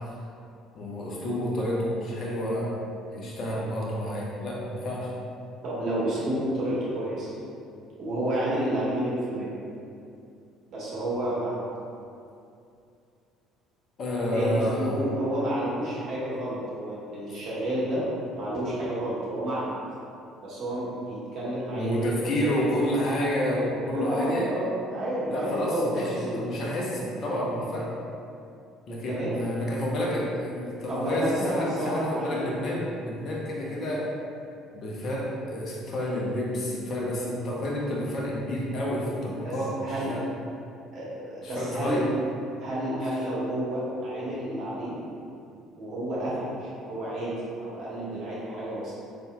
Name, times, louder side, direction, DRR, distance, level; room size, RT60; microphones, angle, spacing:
voice 1, 0.7-2.7 3.1-5.1 14.0-15.0 17.3-17.4 21.7-24.5 25.3-27.9 28.9-34.1 34.7-40.2 41.4-42.0 43.0-43.2, equal, 50° left, -4 dB, 0.8 m, -29 dB
voice 2, 5.6-7.3 8.0-9.5 10.7-11.6 14.3-18.1 18.4-19.7 20.4-22.9 23.9-26.7 29.1-29.4 30.9-32.5 33.6-33.8 39.4-39.5 39.8-40.1 40.9-42.0 42.6-44.9 45.8-47.3 47.6-48.9, right 1 dB, 55° right, -8 dB, 1.4 m, -30 dB
4.1 x 3.4 x 2.3 m, 2.5 s
hypercardioid pair, 55°, 0 cm